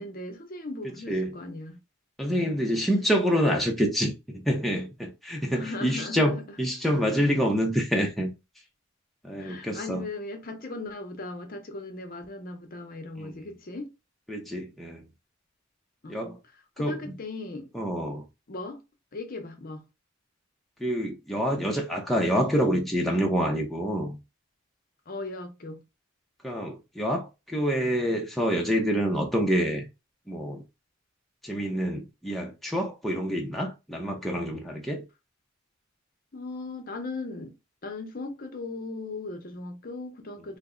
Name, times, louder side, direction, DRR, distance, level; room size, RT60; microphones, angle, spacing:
voice 1, 0.0-1.8 2.4-2.7 5.5-6.4 9.4-13.9 16.0-16.4 16.8-17.7 18.5-18.8 19.1-19.8 25.1-25.8 36.3-37.5 37.8-40.6, left 2 dB, 45° left, 0.7 m, -38 dB
voice 2, 2.2-8.3 9.2-10.1 13.2-13.3 14.3-15.0 16.1-16.4 16.8-17.1 17.7-18.2 20.8-24.2 26.4-29.9 30.3-30.6 31.4-35.0, equal, ahead, 0.5 m, -27 dB
3.3 x 2.0 x 3.6 m
head